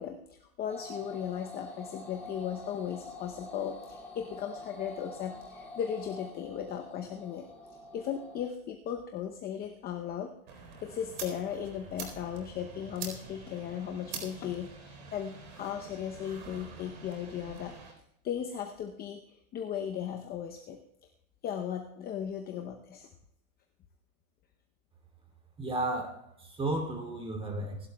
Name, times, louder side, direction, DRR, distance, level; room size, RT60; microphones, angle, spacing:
voice 1, 0.0-7.5 7.9-10.3 10.8-17.7 18.2-20.8 21.4-23.1, left 9 dB, 20° left, 3 dB, 0.8 m, -37 dB
sound 1, 0.7-8.5, left 2 dB, 5° left, 2.3 m, -46 dB
sound 2, 10.5-17.9, right 5 dB, 60° right, 4.2 m, -46 dB
voice 2, 25.6-27.9, right 2 dB, 15° right, 3 dB, 2.8 m, -33 dB
26.5 x 12.0 x 2.3 m, 0.79 s
hypercardioid pair, 140°, 43 cm